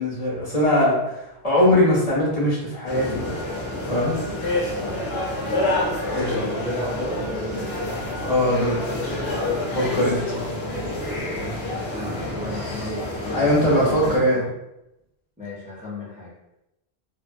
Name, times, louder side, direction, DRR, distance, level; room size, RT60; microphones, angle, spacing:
voice 1, 0.0-3.4 3.9-4.2 6.1-6.3 8.2-8.8 9.7-10.2 13.3-14.5, left 1 dB, 40° left, -8 dB, 0.9 m, -21 dB
sound 1, 2.8-14.2, left 1 dB, 85° left, 1.1 m, -28 dB
voice 2, 4.7-5.6 5.9-7.7 11.7-14.5 15.4-16.3, left 1 dB, 15° right, -7 dB, 0.3 m, -34 dB
2.6 x 2.0 x 2.5 m, 0.88 s
omnidirectional pair, 1.1 m